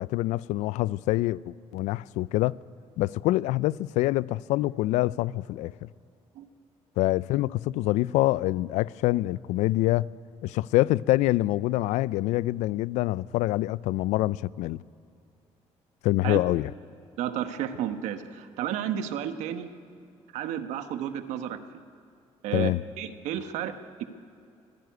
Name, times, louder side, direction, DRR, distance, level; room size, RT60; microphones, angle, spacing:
voice 1, 0.0-2.6 3.0-5.7 7.0-10.1 10.4-14.8 16.0-16.7 22.5-22.8, left 17 dB, 90° left, 0.4 m, -25 dB
voice 2, 17.2-19.7 20.3-21.8 22.4-24.0, right 10 dB, 85° right, 1.3 m, -32 dB
24.0 x 15.5 x 9.5 m
cardioid pair, 90°, 12 cm